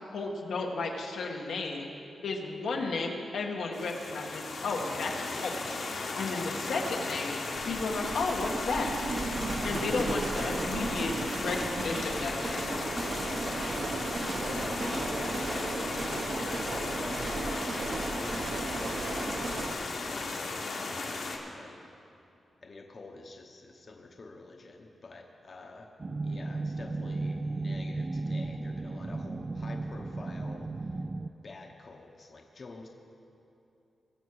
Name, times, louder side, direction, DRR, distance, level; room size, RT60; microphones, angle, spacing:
voice 1, 0.1-1.9 2.2-5.5 6.2-7.4 7.7-8.9 9.6-12.6, left 3 dB, 90° left, 0 dB, 1.5 m, -33 dB
sound 1, 3.7-21.4, left 3 dB, 70° left, 1.5 m, -36 dB
sound 2, 7.5-19.7, right 3 dB, 50° right, 0.8 m, -35 dB
voice 2, 14.4-19.7 20.0-21.8 22.6-25.9 26.2-31.0 31.4-32.9, left 3 dB, 40° left, 2 dB, 0.9 m, -46 dB
sound 3, 26.0-31.3, right 2 dB, 30° right, 0.4 m, -35 dB
21.0 x 7.3 x 4.7 m, 2.7 s
wide cardioid pair, 120°, 0 cm